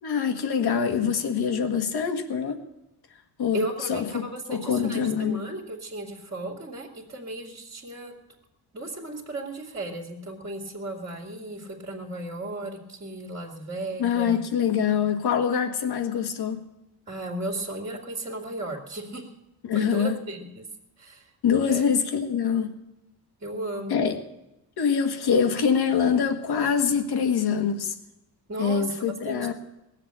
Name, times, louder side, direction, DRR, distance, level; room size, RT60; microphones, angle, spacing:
voice 1, 0.0-2.6 3.4-3.6 3.9-4.2 4.5-5.5 14.0-16.6 19.6-20.2 21.4-22.7 23.9-24.2 24.8-28.0 28.6-29.5, left 7 dB, 65° left, 6 dB, 1.7 m, -24 dB
voice 2, 3.5-8.1 8.7-14.5 17.1-19.3 19.7-20.7 21.0-21.3 21.7-21.8 23.4-24.0 28.5-29.5, right 1 dB, 25° right, 0 dB, 2.2 m, -35 dB
19.0 x 7.5 x 8.7 m, 0.93 s
cardioid pair, 120°, 41 cm